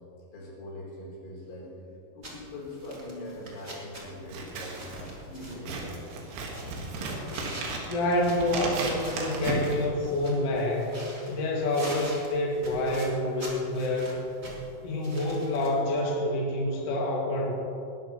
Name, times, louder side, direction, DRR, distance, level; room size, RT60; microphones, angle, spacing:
voice 1, 0.3-6.0, left 1 dB, 85° left, -5 dB, 6.3 m, -42 dB
sound 1, 2.2-15.7, right 1 dB, 45° right, 0.8 m, -46 dB
Scissors, 4.2-10.5, right 3 dB, 75° right, 3.9 m, -35 dB
voice 2, 7.9-10.9 11.3-14.2 14.8-17.5, left 1 dB, 45° left, -3 dB, 2.3 m, -27 dB
20.0 x 12.5 x 3.1 m, 2.8 s
omnidirectional pair, 5.6 m